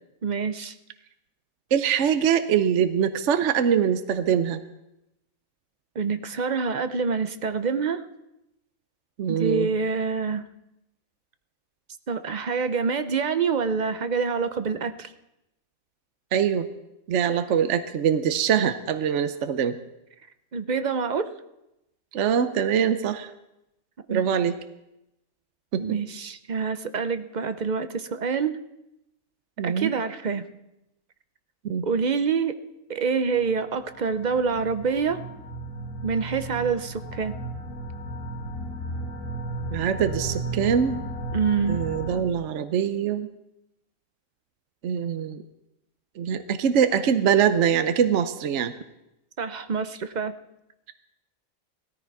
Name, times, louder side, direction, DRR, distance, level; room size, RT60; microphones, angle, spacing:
voice 1, 0.2-0.7 6.0-8.0 9.3-10.5 12.1-15.1 20.5-21.3 24.1-24.2 25.8-28.6 29.6-30.5 31.8-32.6 32.9-35.2 36.0-37.3 41.3-41.8 49.4-50.3, right 5 dB, 40° right, 11 dB, 0.7 m, -26 dB
voice 2, 1.7-4.6 9.2-9.7 16.3-16.7 17.1-19.8 22.1-23.3 24.1-24.6 25.7-26.0 29.6-29.9 31.6-31.9 39.7-41.0 41.7-43.3 44.8-45.4 46.2-48.7, right 8 dB, 60° right, 10 dB, 1.0 m, -23 dB
sound 1, 33.4-42.2, right 1 dB, 75° left, 1.9 m, -35 dB
17.0 x 14.0 x 4.7 m, 0.88 s
omnidirectional pair, 1.4 m